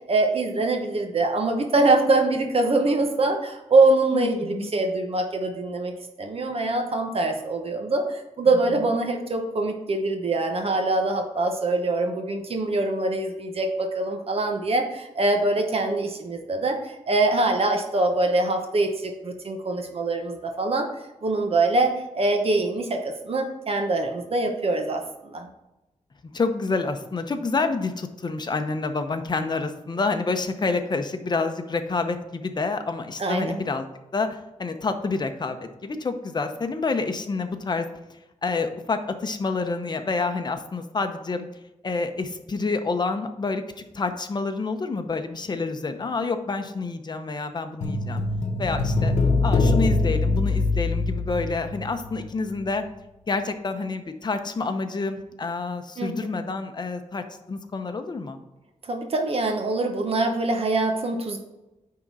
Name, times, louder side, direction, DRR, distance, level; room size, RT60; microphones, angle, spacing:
voice 1, 0.1-5.9 6.2-20.9 21.2-25.5 33.2-33.6 56.0-56.3 58.8-61.4, right 2 dB, 55° right, 4 dB, 1.0 m, -24 dB
voice 2, 4.1-4.7 26.3-33.8 34.1-37.9 38.4-41.5 41.8-43.6 43.9-48.2 48.6-49.1 49.4-52.8 53.3-58.4, left 3 dB, 35° left, 7 dB, 0.7 m, -28 dB
sound 1, 47.8-52.3 52.5-52.6, left 3 dB, 70° left, 1.0 m, -23 dB
9.6 x 3.8 x 4.7 m, 0.98 s
wide cardioid pair, 135°, 12 cm